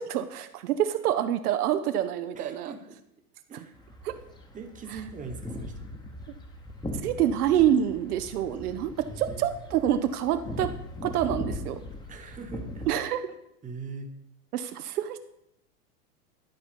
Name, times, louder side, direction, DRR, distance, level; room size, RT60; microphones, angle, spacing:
voice 1, 0.0-2.7 4.0-4.1 7.0-10.7 11.0-11.8 12.9-13.3 14.5-15.2, right 10 dB, 70° right, 9 dB, 0.8 m, -27 dB
voice 2, 2.3-3.0 3.5-3.7 4.5-5.9 9.1-9.5 12.1-12.8 13.6-14.1, right 4 dB, 15° right, 5 dB, 1.2 m, -41 dB
sound 1, 3.7-12.9, left 1 dB, 10° left, 1.0 m, -39 dB
12.0 x 4.3 x 5.2 m, 0.79 s
hypercardioid pair, 115°, 47 cm